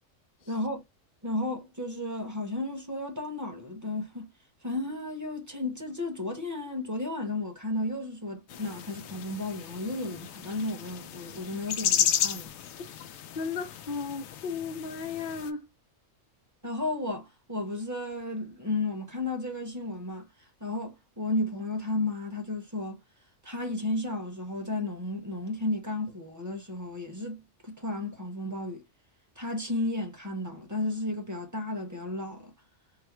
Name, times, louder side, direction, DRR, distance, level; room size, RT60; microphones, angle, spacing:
voice 1, 0.5-0.8 1.2-4.3 4.6-12.5 16.6-20.3 20.6-23.0 23.4-28.9 29.4-32.5, left 2 dB, 15° right, 1.0 m, -33 dB
sound 1, 8.5-15.5, left 10 dB, 90° left, 1.0 m, -33 dB
voice 2, 13.3-15.7, left 5 dB, 55° left, 0.6 m, -35 dB
4.0 x 2.2 x 3.0 m
omnidirectional pair, 1.4 m